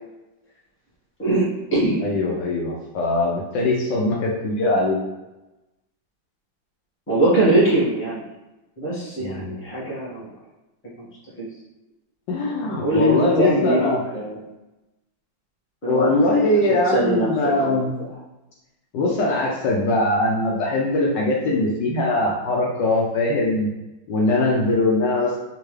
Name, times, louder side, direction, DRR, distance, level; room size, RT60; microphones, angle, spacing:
voice 1, 1.2-2.0 7.1-8.2 8.8-10.3 11.0-11.1 11.4-11.5 12.8-13.8 14.1-14.4 15.8-17.8, right 2 dB, 10° left, -9 dB, 1.0 m, -22 dB
voice 2, 2.0-5.0 9.2-9.6 12.3-14.0 15.9-17.9 18.9-23.7 24.1-25.4, left 2 dB, 70° left, -3 dB, 1.2 m, -21 dB
3.6 x 2.9 x 3.1 m, 1.0 s
omnidirectional pair, 2.1 m